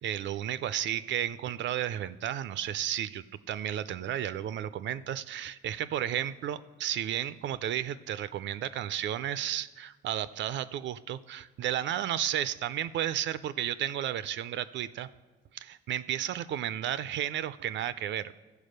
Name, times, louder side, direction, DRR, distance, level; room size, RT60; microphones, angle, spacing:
voice 1, 0.0-15.1 15.5-18.3, right 11 dB, 65° right, 15 dB, 0.4 m, -33 dB
14.0 x 4.8 x 6.5 m, 1.2 s
cardioid pair, 90°, 20 cm